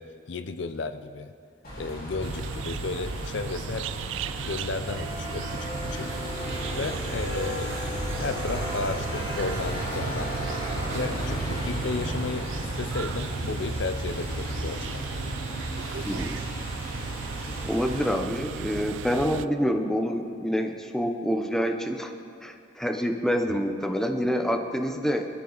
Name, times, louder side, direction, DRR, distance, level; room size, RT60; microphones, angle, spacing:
voice 1, 0.0-1.3 1.8-3.9 4.2-6.1 6.8-10.3 10.9-15.0, left 3 dB, 60° left, 10 dB, 0.6 m, -33 dB
sound 1, 1.6-18.1, equal, 45° left, 4.1 m, -34 dB
sound 2, 2.2-19.5, right 6 dB, 65° right, 0.4 m, -36 dB
voice 2, 16.1-16.4 17.6-22.1 22.4-25.3, equal, ahead, 4 dB, 0.7 m, -27 dB
23.0 x 13.0 x 4.0 m, 2.3 s
head